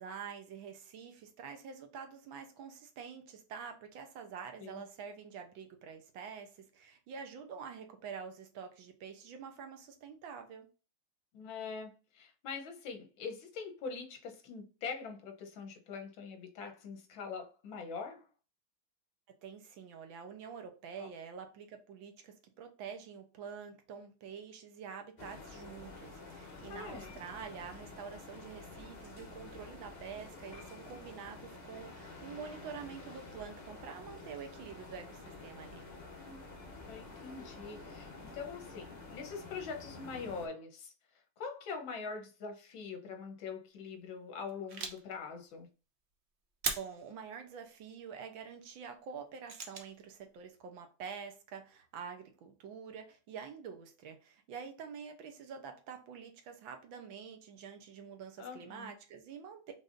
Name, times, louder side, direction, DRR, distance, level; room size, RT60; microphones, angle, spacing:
voice 1, 0.0-10.7 19.3-35.8 46.7-59.7, right 6 dB, 80° right, 1.6 m, -47 dB
voice 2, 11.3-18.2 21.0-21.1 26.7-27.2 36.1-36.4 36.9-40.9 41.4-45.7 58.4-58.9, left 5 dB, 75° left, 1.7 m, -43 dB
sound 1, 25.2-40.5, left 3 dB, 40° left, 0.6 m, -49 dB
sound 2, 44.4-45.0 46.6-47.1 49.5-49.9, right 4 dB, 60° right, 0.7 m, -38 dB
5.5 x 3.5 x 2.6 m
omnidirectional pair, 2.2 m